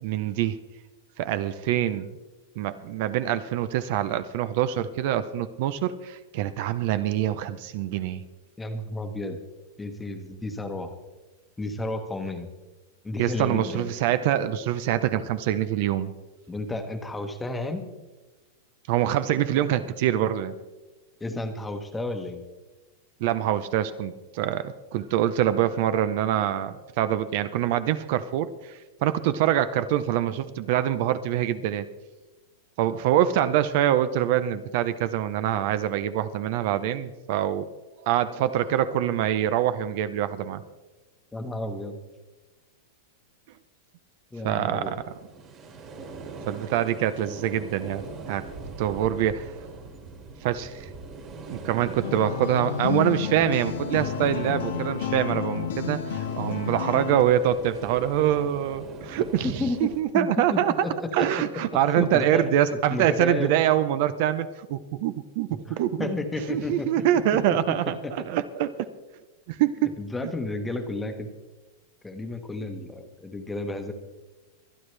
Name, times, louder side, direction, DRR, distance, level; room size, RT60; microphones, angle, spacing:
voice 1, 0.0-0.6 1.2-2.1 2.6-8.2 13.2-16.1 18.9-20.5 23.2-31.8 32.8-37.7 38.0-40.6 44.4-45.0 46.5-48.4 48.8-49.5 50.4-50.9 51.5-60.9 61.1-66.1 66.5-68.0 68.3-68.7 69.5-69.7, right 11 dB, 50° right, 13 dB, 0.6 m, -25 dB
voice 2, 8.6-9.4 9.8-10.9 11.6-12.5 13.0-13.9 16.5-17.8 21.2-22.4 41.3-42.0 44.3-45.0 59.4-59.9 60.1-61.3 62.0-63.5 65.7-66.9 68.0-68.2 69.8-71.3 72.0-73.9, left 2 dB, 10° left, 6 dB, 1.2 m, -32 dB
sound 1, 44.8-60.0, right 3 dB, 25° right, 2.1 m, -41 dB
sound 2, 52.0-57.2, left 8 dB, 85° left, 1.8 m, -30 dB
24.5 x 9.8 x 3.3 m, 1.2 s
supercardioid pair, 160°, 0 cm